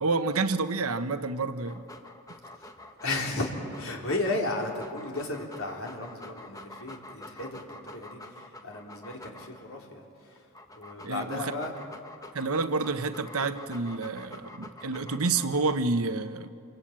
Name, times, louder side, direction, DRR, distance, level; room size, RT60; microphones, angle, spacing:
voice 1, 0.0-1.8 11.0-11.6 12.3-16.5, right 3 dB, 80° right, 10 dB, 1.1 m, -29 dB
Dog, 1.6-9.8 10.4-15.8, left 1 dB, 15° left, 1.2 m, -47 dB
voice 2, 3.0-10.5 10.7-11.7, left 2 dB, 65° left, 0 dB, 3.9 m, -34 dB
27.5 x 23.0 x 8.9 m, 2.5 s
head